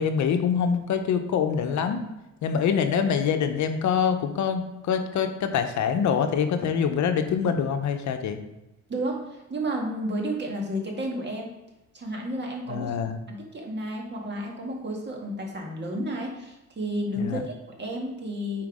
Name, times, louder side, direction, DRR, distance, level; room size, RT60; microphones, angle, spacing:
voice 1, 0.0-2.0 2.4-8.4 12.7-13.2 17.2-17.4, left 7 dB, 70° left, 7 dB, 0.8 m, -25 dB
voice 2, 8.9-11.5 11.9-13.0 13.3-18.7, right 1 dB, 35° right, 0 dB, 1.8 m, -31 dB
5.8 x 4.5 x 4.8 m, 0.96 s
cardioid pair, 90°, 30 cm